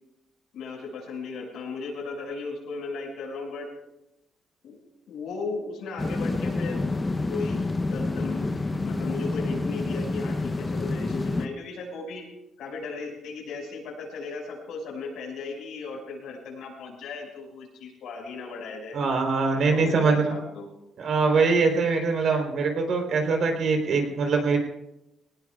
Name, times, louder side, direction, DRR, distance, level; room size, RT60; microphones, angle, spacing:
voice 1, 0.5-3.7 4.6-4.8 5.1-6.9 7.3-12.2 12.6-19.0 19.5-20.7, left 4 dB, 90° left, -1 dB, 5.7 m, -36 dB
sound 1, 6.0-11.5, left 2 dB, 20° left, 0.8 m, -28 dB
voice 2, 18.9-20.4 21.0-24.6, right 4 dB, 60° right, 3 dB, 3.7 m, -23 dB
22.5 x 18.5 x 2.4 m, 0.90 s
cardioid pair, 140°, 0 cm